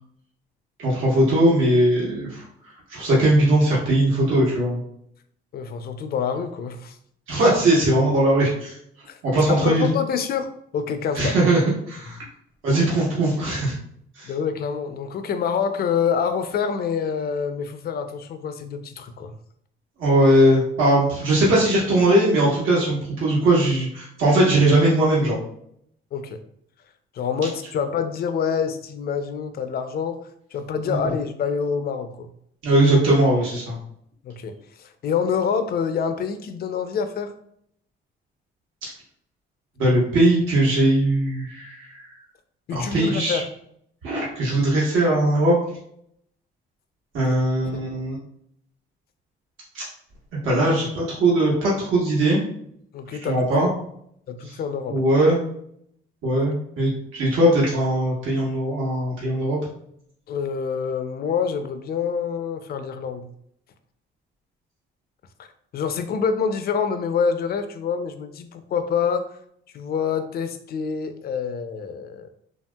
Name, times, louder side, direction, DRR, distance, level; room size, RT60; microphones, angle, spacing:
voice 1, 0.8-4.8 7.3-8.8 9.2-9.9 11.1-11.6 11.9-12.2 12.6-13.7 14.1-14.3 20.0-25.4 30.8-31.0 32.6-33.8 39.8-42.0 42.7-43.4 44.0-45.6 47.1-48.2 49.7-49.8 50.4-52.4 53.2-53.7 54.4-54.5 54.9-55.4 56.2-59.6, right 1 dB, 90° right, -6 dB, 1.2 m, -20 dB
voice 2, 5.5-7.0 9.1-9.2 9.5-11.4 14.2-19.3 26.1-26.4 27.1-32.3 34.2-37.3 42.7-43.5 47.2-47.4 52.9-53.7 54.3-55.0 56.3-56.4 60.3-63.3 65.4-65.5 65.7-69.3 69.7-72.3, left 6 dB, 50° left, 9 dB, 0.4 m, -26 dB
2.9 x 2.7 x 2.2 m, 0.69 s
cardioid pair, 90°, 20 cm